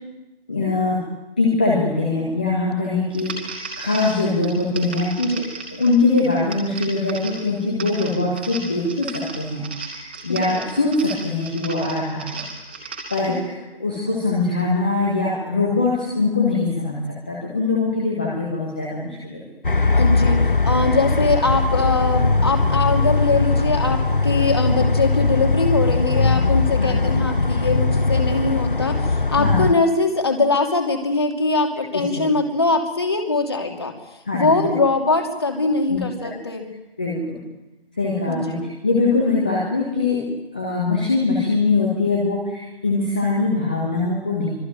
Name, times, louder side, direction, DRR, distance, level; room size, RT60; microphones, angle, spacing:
voice 1, 0.5-1.0 1.4-5.2 5.7-12.4 12.8-19.4 26.8-27.1 29.4-29.7 31.9-32.2 34.2-34.5 35.9-36.3 37.0-37.4 38.0-40.3 40.5-44.5, left 3 dB, 10° left, -4 dB, 1.5 m, -22 dB
sound 1, 3.1-13.4, right 4 dB, 10° right, 2.4 m, -36 dB
sound 2, 19.6-29.7, left 3 dB, 55° left, 1.0 m, -20 dB
voice 2, 20.0-20.4 20.6-36.7 38.3-38.6, left 3 dB, 25° left, 4 dB, 2.8 m, -22 dB
25.0 x 24.5 x 9.0 m, 0.99 s
figure-of-eight pair, 165°, 30 cm